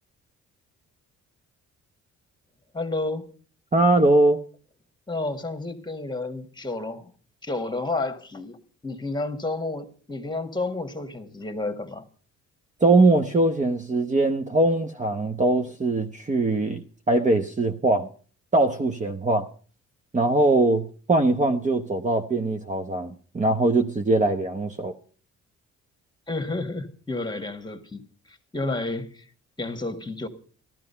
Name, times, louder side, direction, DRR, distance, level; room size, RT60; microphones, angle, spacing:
voice 1, 2.7-3.3 5.1-7.1 7.4-12.0 26.3-28.0 28.3-29.3 29.6-30.3, left 2 dB, 15° left, 1.6 m, -31 dB
voice 2, 3.7-4.4 12.8-18.1 18.5-19.5 20.1-24.9, right 2 dB, 25° right, 0.9 m, -21 dB
14.0 x 12.5 x 5.6 m
cardioid pair, 90°, 30 cm